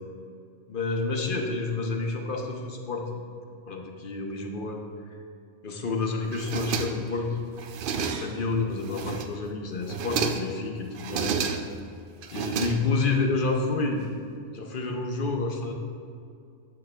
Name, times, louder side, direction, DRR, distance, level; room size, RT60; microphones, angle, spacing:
voice 1, 0.7-3.2 3.7-4.8 5.6-7.4 8.0-11.4 12.3-14.0 14.5-15.7, left 3 dB, 45° left, 2 dB, 0.8 m, -29 dB
sound 1, 6.3-7.2 7.6-8.5 8.8-9.5 9.8-10.6 11.0-11.8 12.2-13.2, right 6 dB, 65° right, 0.5 m, -31 dB
8.2 x 7.5 x 3.3 m, 2.4 s
omnidirectional pair, 1.4 m